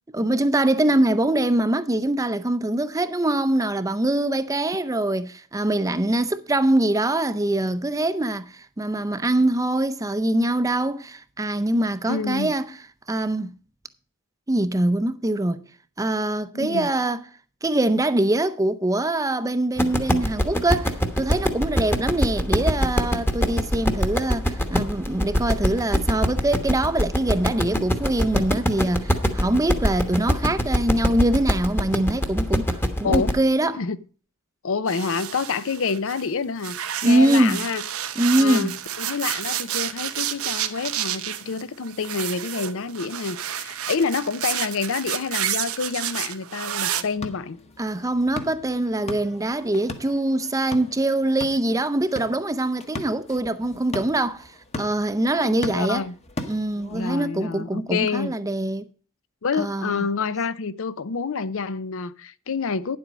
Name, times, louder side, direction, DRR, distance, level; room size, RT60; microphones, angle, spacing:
voice 1, 0.1-12.8 13.1-13.5 14.5-15.6 16.0-17.2 17.6-33.8 37.0-37.6 38.2-38.7 47.8-56.0 56.5-58.9 59.6-60.0, right 1 dB, 15° right, 0.6 m, -23 dB
voice 2, 12.1-12.5 16.5-16.9 33.0-33.3 33.8-34.0 34.6-37.8 38.4-47.6 55.4-56.1 56.9-58.3 59.4-63.0, left 5 dB, 65° left, 0.6 m, -28 dB
sound 1, 19.8-33.4, equal, 10° left, 1.1 m, -23 dB
sound 2, 34.9-36.3 36.6-47.0, right 11 dB, 80° right, 0.9 m, -30 dB
sound 3, 46.9-57.1, left 2 dB, 30° left, 1.1 m, -39 dB
9.9 x 7.7 x 5.0 m
head